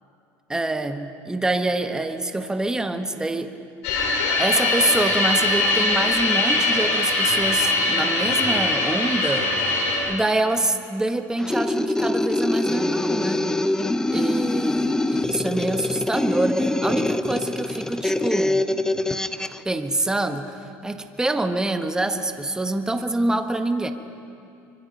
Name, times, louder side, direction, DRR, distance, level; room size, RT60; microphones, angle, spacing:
voice 1, 0.5-3.5 4.4-9.5 10.1-13.5 14.0-18.7 19.6-20.6 20.8-23.9, right 2 dB, 10° right, 7 dB, 1.3 m, -25 dB
sound 1, 3.8-10.0, left 2 dB, 90° left, 6.5 m, -21 dB
sound 2, 11.4-19.6, left 2 dB, 10° left, 0.7 m, -24 dB
24.5 x 24.0 x 5.4 m, 2.6 s
supercardioid pair, 110°, 8 cm